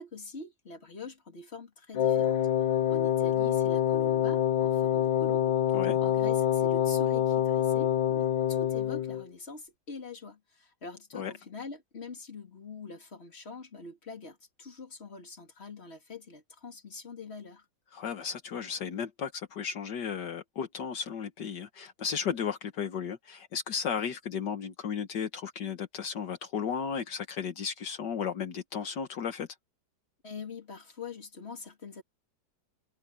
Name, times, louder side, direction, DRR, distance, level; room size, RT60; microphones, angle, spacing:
voice 1, 0.0-2.4 2.9-5.6 6.0-17.7 30.2-32.0, left 4 dB, 35° left, 2.8 m, -44 dB
Wind instrument woodwind instrument, 1.9-9.3, left 10 dB, 90° left, 1.6 m, -26 dB
voice 2, 17.9-29.5, left 7 dB, 75° left, 1.9 m, -34 dB
omnidirectional pair, 1.9 m